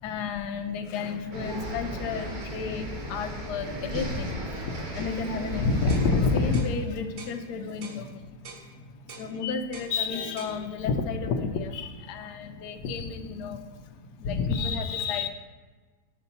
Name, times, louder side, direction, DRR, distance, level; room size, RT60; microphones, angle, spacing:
voice 1, 0.0-15.3, left 4 dB, 70° left, 6 dB, 1.1 m, -30 dB
sound 1, 1.3-6.6, right 1 dB, 35° right, 0.8 m, -35 dB
sound 2, 5.9-6.1 6.5-6.8 7.2-7.4 7.8-8.0 8.5-8.7 9.1-9.3 9.7-9.9 10.4-10.6, right 4 dB, 70° right, 1.5 m, -44 dB
5.9 x 4.0 x 5.7 m, 1.3 s
omnidirectional pair, 2.0 m